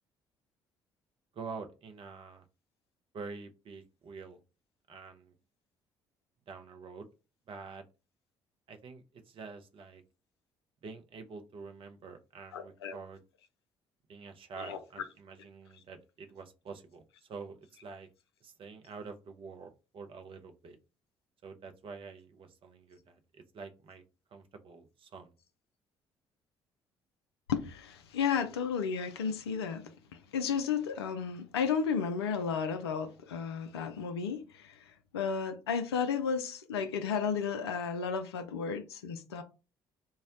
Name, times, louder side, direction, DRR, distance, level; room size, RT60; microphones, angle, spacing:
voice 1, 1.3-2.4 3.1-4.4 4.9-5.3 6.5-7.1 7.5-7.9 8.7-10.0 10.8-13.2 14.1-18.1 18.4-20.8 21.4-24.0 24.3-25.3, right 4 dB, 40° right, 0.5 m, -47 dB
voice 2, 12.5-13.0 14.6-14.8 27.5-29.9 30.3-34.7 35.1-39.4, left 6 dB, 80° left, 0.4 m, -33 dB
2.3 x 2.1 x 3.8 m
figure-of-eight pair, 50°, 13 cm